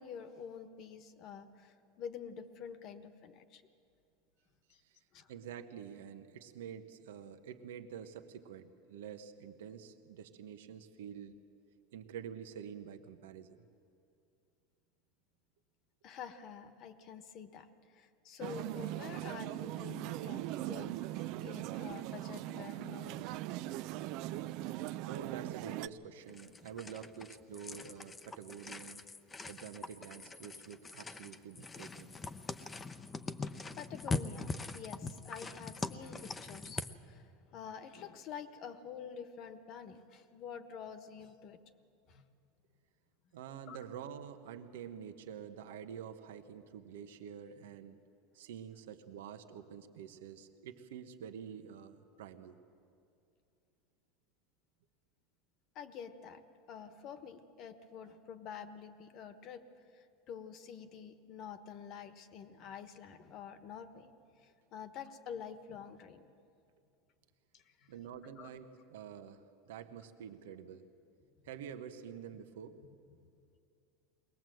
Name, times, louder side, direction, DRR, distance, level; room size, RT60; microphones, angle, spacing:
voice 1, 0.0-3.6 4.7-4.8 5.1-5.3 16.0-23.4 33.8-41.6 42.1-42.2 43.7-43.8 55.7-59.7 59.9-64.1 64.4-66.3 67.5-67.9 68.4-68.5, left 7 dB, 45° left, 10 dB, 1.3 m, -48 dB
voice 2, 5.3-11.4 11.9-13.6 25.0-29.0 29.5-32.1 43.3-48.0 48.3-52.6 67.9-70.8 71.4-72.8, right 8 dB, 90° right, 7 dB, 1.2 m, -48 dB
sound 1, 18.4-25.9, right 15 dB, 55° right, 0.5 m, -40 dB
sound 2, 26.3-37.0, left 3 dB, 15° left, 0.7 m, -42 dB
21.5 x 19.0 x 7.8 m, 2.5 s
supercardioid pair, 130°, 0 cm